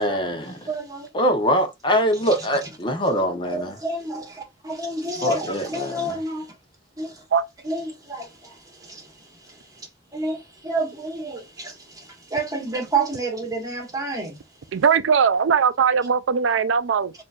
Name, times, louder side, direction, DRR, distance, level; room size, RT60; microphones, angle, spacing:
voice 1, 0.0-0.7 1.1-3.7 5.2-6.2, equal, 25° left, 0.9 m, -23 dB
voice 2, 0.7-1.1 2.3-2.5 3.5-6.5 7.0-7.2 7.6-14.4, right 2 dB, 20° right, 1.7 m, -30 dB
voice 3, 14.7-17.1, right 6 dB, 90° right, 0.4 m, -19 dB
6.5 x 2.7 x 2.4 m
head